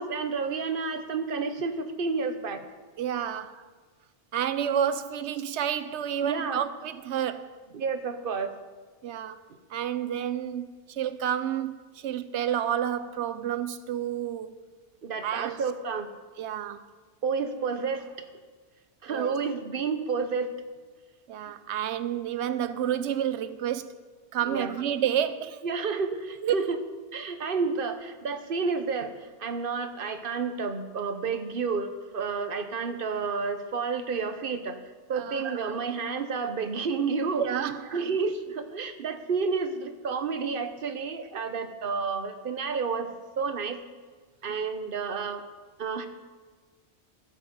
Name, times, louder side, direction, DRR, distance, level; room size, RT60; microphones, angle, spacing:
voice 1, 0.0-2.6 6.2-6.6 7.7-8.6 15.0-16.1 17.2-18.1 19.0-20.6 24.4-24.8 25.6-26.8 27.1-34.8 35.1-37.4 37.9-43.1 43.4-43.8 44.4-45.4 45.8-46.1, right 5 dB, 55° right, 1.1 m, -30 dB
voice 2, 3.0-3.6 4.3-7.6 9.0-9.4 9.7-14.6 15.2-15.6 16.4-16.8 19.1-19.3 21.3-23.9 24.3-25.6 26.4-26.6 35.1-35.4 37.4-37.9 41.3-41.4 44.5-44.7, right 9 dB, 80° right, 0.9 m, -30 dB
14.5 x 7.6 x 5.3 m
omnidirectional pair, 1.1 m